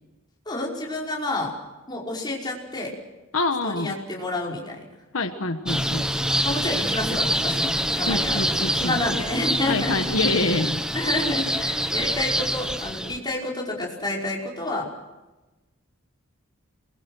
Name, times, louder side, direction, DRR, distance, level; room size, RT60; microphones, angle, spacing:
voice 1, 0.5-1.5 1.9-2.9 3.6-4.8 6.4-9.9 10.9-14.9, left 2 dB, 20° left, -3 dB, 5.2 m, -29 dB
voice 2, 3.3-3.9 5.1-6.1 8.1-9.0 9.7-10.8, left 2 dB, 70° left, 7 dB, 1.4 m, -26 dB
sound 1, 5.7-13.2, equal, 5° right, 1.0 m, -26 dB
27.5 x 22.0 x 6.4 m, 1.1 s
head